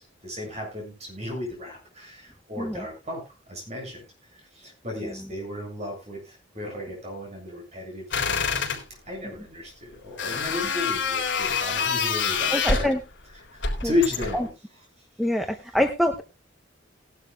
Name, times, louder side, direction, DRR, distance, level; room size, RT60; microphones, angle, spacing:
voice 1, 0.2-4.0 4.3-8.7 9.1-12.9 13.5-14.5, left 2 dB, 35° right, 0 dB, 7.5 m, -33 dB
sound 1, 8.1-8.8 10.2-13.0 13.6-14.5, left 5 dB, 65° left, 3.9 m, -26 dB
voice 2, 12.5-13.0 13.8-13.9 14.3-14.4 15.2-16.2, left 1 dB, ahead, 4 dB, 0.8 m, -25 dB
18.5 x 12.0 x 2.3 m, 0.26 s
head